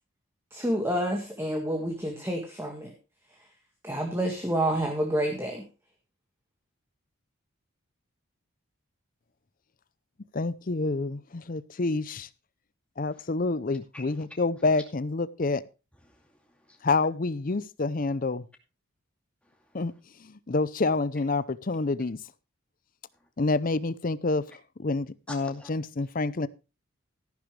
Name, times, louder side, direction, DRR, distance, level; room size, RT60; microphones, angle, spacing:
voice 1, 0.5-2.9 3.8-5.6, right 1 dB, 10° right, 1.8 m, -28 dB
voice 2, 10.3-12.3 13.0-15.6 16.8-18.4 19.7-19.9 20.2-22.2 23.4-24.4 24.8-26.5, left 3 dB, 40° left, 0.6 m, -28 dB
voice 3, 13.9-14.3 16.0-16.9 19.4-19.8 23.1-23.3 25.3-25.7, left 2 dB, 5° left, 2.4 m, -48 dB
14.0 x 11.5 x 3.3 m
head